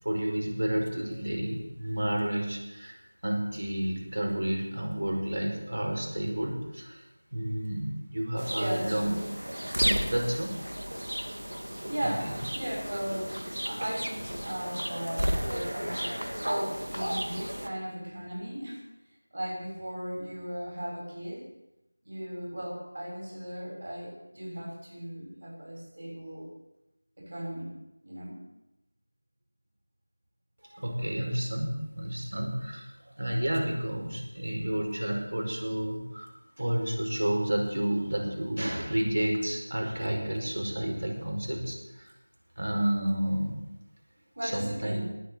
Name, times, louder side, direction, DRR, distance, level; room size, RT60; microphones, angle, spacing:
voice 1, 0.0-3.0 3.2-7.0 7.3-9.1 9.8-10.6 12.0-12.1 30.7-36.3 36.6-42.1 42.6-43.5 44.4-45.0, right 1 dB, 70° right, 1 dB, 5.1 m, -30 dB
sound 1, 8.4-17.7, equal, 90° right, 1.9 m, -33 dB
voice 2, 8.5-9.2 11.9-13.4 13.7-18.8 19.3-21.5 22.0-26.5 27.2-27.7 28.0-28.4 44.4-45.0, equal, 55° right, -2 dB, 6.2 m, -36 dB
19.0 x 8.1 x 8.5 m, 0.93 s
figure-of-eight pair, 170°, 0 cm